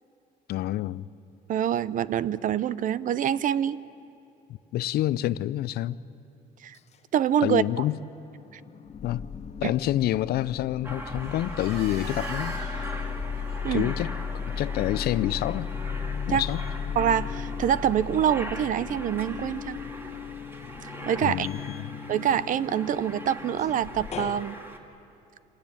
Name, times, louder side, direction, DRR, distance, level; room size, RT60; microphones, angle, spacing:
voice 1, 0.5-1.0 4.7-6.0 7.4-8.0 9.0-9.2 9.6-12.6 13.7-14.1 14.6-15.7 16.3-16.6 21.2-21.9, left 14 dB, 70° left, 0.5 m, -27 dB
voice 2, 1.5-3.8 6.6-6.7 7.1-7.6 9.6-9.7 13.6-13.9 16.3-16.4 17.0-19.8 21.1-21.5 22.1-24.6, right 9 dB, 50° right, 0.6 m, -25 dB
sound 1, 7.4-8.1 8.5-24.4, left 6 dB, 40° left, 1.0 m, -36 dB
Aircraft, 10.8-24.8, right 1 dB, 15° right, 2.2 m, -41 dB
sound 2, 11.1-16.6, right 2 dB, 75° right, 5.2 m, -46 dB
25.5 x 18.0 x 8.8 m
cardioid pair, 110°, 17 cm